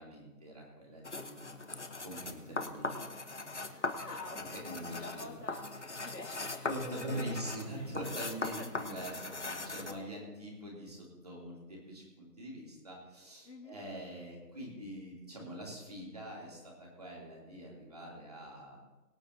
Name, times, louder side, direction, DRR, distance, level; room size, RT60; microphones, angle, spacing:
voice 1, 0.0-1.7 2.0-3.1 3.5-4.0 4.3-5.3 6.7-18.8, equal, 25° right, -2 dB, 2.9 m, -44 dB
sound 1, 1.0-10.0, left 3 dB, 45° left, 1.0 m, -40 dB
voice 2, 3.6-5.7 6.0-6.7 7.1-7.4 7.7-9.4 9.8-10.3 13.4-13.8, left 2 dB, 80° left, -2 dB, 2.7 m, -49 dB
23.5 x 11.5 x 2.8 m, 1.1 s
figure-of-eight pair, 175°, 48 cm